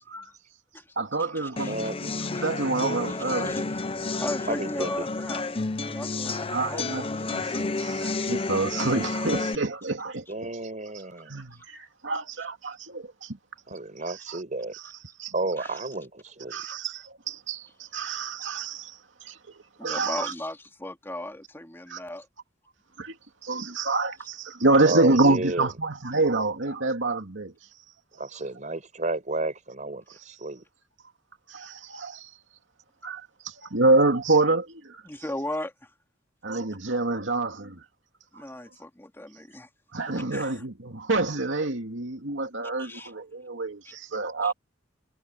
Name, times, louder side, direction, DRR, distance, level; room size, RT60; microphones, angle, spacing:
voice 1, 1.0-3.7 4.1-4.3 6.5-10.5 11.3-13.4 13.7-13.8 14.0-14.4 14.7-15.7 16.5-20.3 21.9-22.0 23.0-23.2 23.4-27.5 31.5-32.3 33.0-35.0 36.4-37.8 38.3-38.4 39.9-44.5, right 2 dB, 75° right, 2.5 m, -27 dB
sound 1, 1.6-9.5, left 3 dB, 30° left, 0.9 m, -31 dB
voice 2, 1.7-2.0 4.5-5.1 10.3-11.4 13.7-14.7 15.3-16.7 24.8-25.7 28.2-30.6 36.5-36.6, right 2 dB, 40° right, 5.0 m, -32 dB
voice 3, 4.1-5.4 5.8-7.2 15.6-15.8 19.8-22.3 35.1-35.7 38.3-39.7 40.1-40.5 42.8-43.1 44.4-44.5, left 1 dB, 15° left, 2.8 m, -36 dB
head